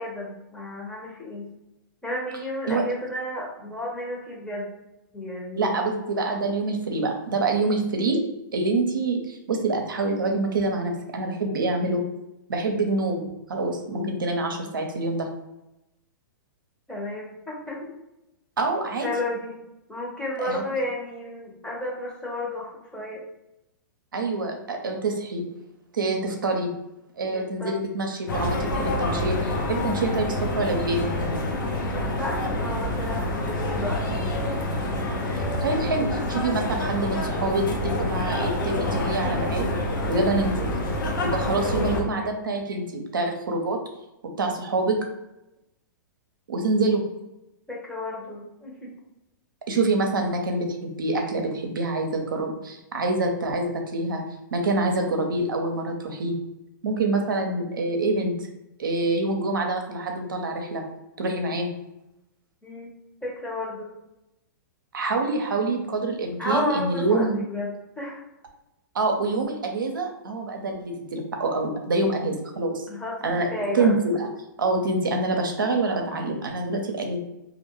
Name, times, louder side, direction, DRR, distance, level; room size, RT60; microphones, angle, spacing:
voice 1, 0.0-1.5 2.0-4.7 5.1-5.9 13.9-14.1 16.9-17.9 19.0-19.5 19.9-23.2 27.3-27.7 31.8-34.5 41.4-42.4 47.7-48.9 62.6-62.9 63.2-63.9 66.4-68.2 72.9-73.9, left 1 dB, 10° left, -4 dB, 0.9 m, -32 dB
voice 2, 5.6-8.2 8.5-12.0 12.5-15.3 18.6-19.1 20.4-20.6 24.1-25.4 25.9-26.7 27.2-31.1 35.3-39.7 40.1-40.7 41.2-43.8 44.4-45.0 46.5-47.0 49.7-54.2 54.5-56.3 56.8-58.3 58.8-60.8 61.2-61.7 64.9-67.4 68.9-72.8 73.2-73.5 73.7-74.3 74.6-77.2, right 2 dB, 85° right, 2 dB, 0.5 m, -26 dB
sound 1, 28.3-42.0, left 1 dB, 80° left, 0.6 m, -27 dB
2.4 x 2.1 x 3.0 m, 0.91 s
hypercardioid pair, 115°, 11 cm